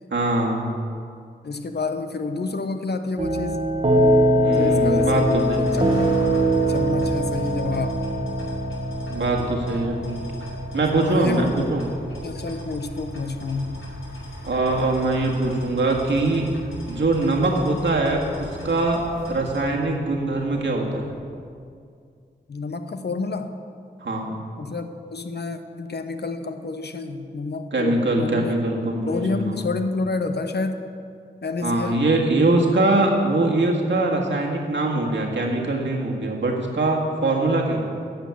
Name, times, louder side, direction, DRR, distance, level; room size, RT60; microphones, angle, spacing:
voice 1, 0.1-0.7 4.4-5.7 9.1-10.0 10.7-11.8 14.4-16.5 16.9-21.1 24.0-24.4 27.7-29.6 31.6-37.8, right 2 dB, 70° right, -1 dB, 1.8 m, -22 dB
voice 2, 1.4-3.7 4.5-6.2 6.7-8.0 10.9-11.7 12.2-13.9 22.5-23.6 24.6-28.6 29.1-30.8 31.4-32.0, left 3 dB, 60° left, 8 dB, 0.8 m, -29 dB
sound 1, 3.2-21.2, right 1 dB, 30° right, 1.0 m, -25 dB
sound 2, 4.5-19.6, equal, 90° left, 3.2 m, -40 dB
11.5 x 5.2 x 8.4 m, 2.3 s
cardioid pair, 55°, 20 cm